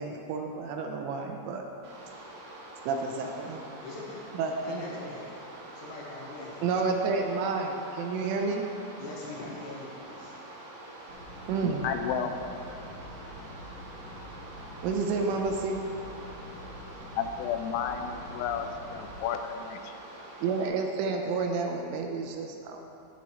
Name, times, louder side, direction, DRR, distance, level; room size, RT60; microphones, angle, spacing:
voice 1, 0.0-1.6 2.9-3.6 4.4-4.8 6.6-8.7 11.5-11.9 14.8-15.8 20.4-22.8, right 4 dB, 85° right, 3 dB, 2.9 m, -30 dB
sound 1, 1.8-20.7, right 1 dB, 65° right, 2.1 m, -46 dB
voice 2, 3.8-4.2 4.6-5.3 5.7-6.8 9.0-10.5, left 2 dB, 75° left, -4 dB, 2.9 m, -42 dB
sound 2, 11.1-19.2, equal, 50° right, 3.2 m, -46 dB
voice 3, 11.8-12.6 17.1-20.0, left 7 dB, 90° left, 7 dB, 3.2 m, -32 dB
16.5 x 5.7 x 3.1 m, 2.7 s
omnidirectional pair, 5.8 m